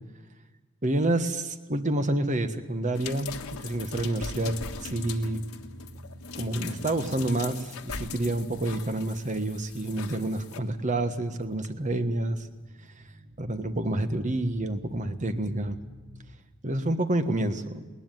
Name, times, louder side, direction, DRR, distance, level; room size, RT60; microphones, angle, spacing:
voice 1, 0.8-5.4 6.3-12.5 13.4-15.8 16.6-17.8, right 1 dB, 35° right, 9 dB, 1.4 m, -28 dB
sound 1, 2.9-10.6 11.6-11.7, left 5 dB, 90° left, 1.5 m, -40 dB
sound 2, 4.4-16.3, equal, 65° right, 2.6 m, -49 dB
20.0 x 19.5 x 9.2 m, 1.3 s
head